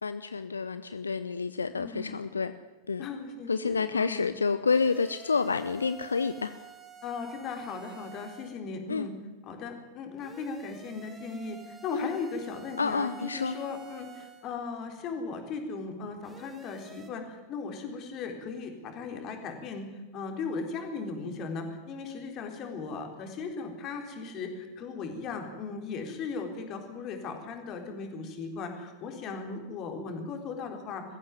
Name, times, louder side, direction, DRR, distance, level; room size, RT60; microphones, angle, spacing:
voice 1, 0.0-2.5 2.9-3.1 3.5-6.5 8.9-9.1 11.9-12.1 12.8-13.6, left 5 dB, 75° left, 12 dB, 0.7 m, -29 dB
voice 2, 1.7-2.1 3.0-4.3 7.0-9.1 9.4-31.0, left 4 dB, 35° left, 4 dB, 3.9 m, -37 dB
sound 1, 4.7-8.6 10.2-14.5 16.2-17.1, right 4 dB, 15° right, 2.1 m, -49 dB
20.5 x 15.0 x 9.4 m, 1.2 s
figure-of-eight pair, 90°, 0 cm